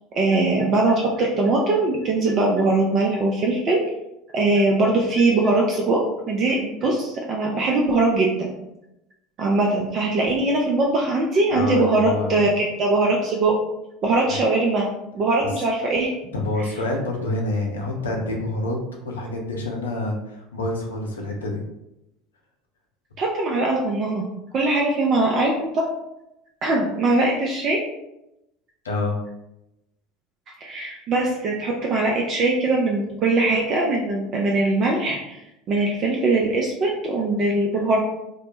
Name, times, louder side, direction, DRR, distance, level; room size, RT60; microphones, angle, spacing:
voice 1, 0.1-3.8 4.3-6.0 6.3-8.6 9.4-13.5 14.0-14.8 15.1-16.1 23.2-24.3 24.5-25.8 26.6-27.8 30.6-35.4 35.7-38.0, right 2 dB, 45° right, -1 dB, 0.4 m, -21 dB
voice 2, 11.5-12.5 14.3-14.4 16.3-18.8 19.0-21.6 28.8-29.2, left 2 dB, 80° left, 0 dB, 0.5 m, -27 dB
2.1 x 2.0 x 3.0 m, 0.87 s
figure-of-eight pair, 70°, 0 cm